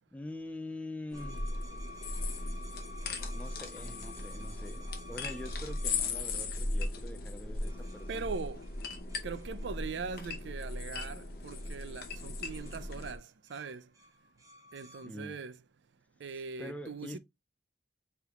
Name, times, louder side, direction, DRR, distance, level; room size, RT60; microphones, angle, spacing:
voice 1, 0.1-1.5 2.2-2.4 3.3-8.3 15.0-15.4 16.3-17.2, left 1 dB, 10° left, 0.3 m, -45 dB
sound 1, 1.1-13.2, left 3 dB, 55° left, 0.8 m, -38 dB
sound 2, 1.1-7.0 7.6-11.0 11.5-11.7 12.0-12.2 12.5-15.1, left 1 dB, 20° right, 0.7 m, -53 dB
voice 2, 8.1-8.6 9.2-13.9 14.7-15.6 16.2-17.2, right 5 dB, 80° right, 0.4 m, -41 dB
4.6 x 3.4 x 2.4 m
head